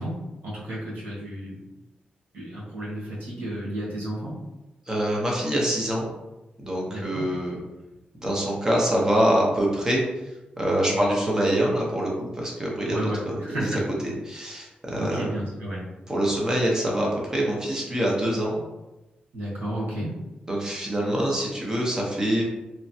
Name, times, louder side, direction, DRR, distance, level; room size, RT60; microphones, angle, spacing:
voice 1, 0.0-1.6 2.3-4.3 6.9-7.3 10.9-11.1 12.8-13.9 15.0-15.9 19.3-20.2, right 1 dB, 85° right, -6 dB, 1.2 m, -32 dB
voice 2, 4.9-6.1 6.6-7.6 8.2-10.0 10.6-15.3 16.1-18.6 20.5-22.4, right 1 dB, 20° right, -3 dB, 0.8 m, -25 dB
3.1 x 2.2 x 2.7 m, 1.0 s
wide cardioid pair, 120°, 3 cm